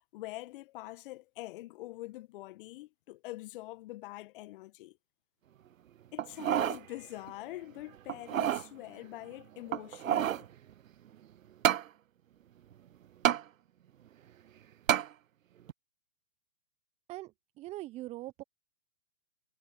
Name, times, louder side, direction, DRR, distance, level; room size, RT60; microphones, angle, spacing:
voice 1, 0.1-5.0 6.1-10.5, left 18 dB, 35° left, 1.8 m, -44 dB
sound 1, 6.2-6.8 7.3-7.4 8.1-8.7 9.7-10.5 11.6-11.9 13.2-13.4 14.9-15.1 15.7-15.8, right 10 dB, 55° right, 0.7 m, -28 dB
voice 2, 17.6-18.4, right 17 dB, 15° right, 0.9 m, -41 dB
figure-of-eight pair, 130°, 47 cm